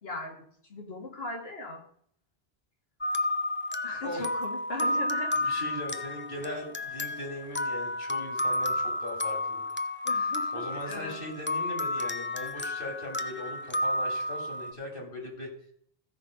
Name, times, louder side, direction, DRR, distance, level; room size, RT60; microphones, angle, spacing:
voice 1, 0.0-0.4 0.7-1.8 3.8-5.7 10.0-11.2, left 2 dB, 75° left, 2 dB, 2.3 m, -38 dB
sound 1, 3.0-14.7, left 2 dB, 15° left, 0.4 m, -31 dB
voice 2, 5.4-9.6 10.5-15.5, left 1 dB, 60° left, 1 dB, 2.9 m, -39 dB
15.0 x 5.5 x 5.1 m, 0.64 s
omnidirectional pair, 1.1 m